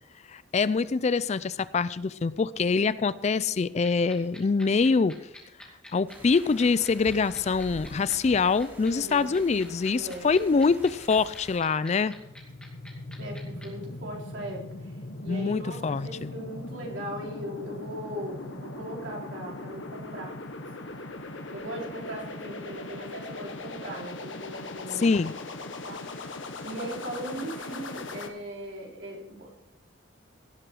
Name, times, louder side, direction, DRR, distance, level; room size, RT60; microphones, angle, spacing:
voice 1, 0.3-5.1 5.9-12.1 15.3-16.3 25.0-25.3, left 4 dB, 35° left, 17 dB, 0.4 m, -25 dB
sound 1, 3.8-13.7, left 1 dB, 5° left, 2.5 m, -47 dB
sound 2, 6.1-11.6, equal, 10° right, 2.8 m, -47 dB
voice 2, 8.8-9.4 9.9-10.3 13.2-15.0 15.2-20.4 21.5-25.1 25.6-26.4 26.6-29.5, right 1 dB, 70° right, -2 dB, 3.9 m, -39 dB
sound 3, 11.8-28.3, left 2 dB, 80° left, 1.5 m, -40 dB
17.5 x 7.9 x 4.7 m, 0.85 s
head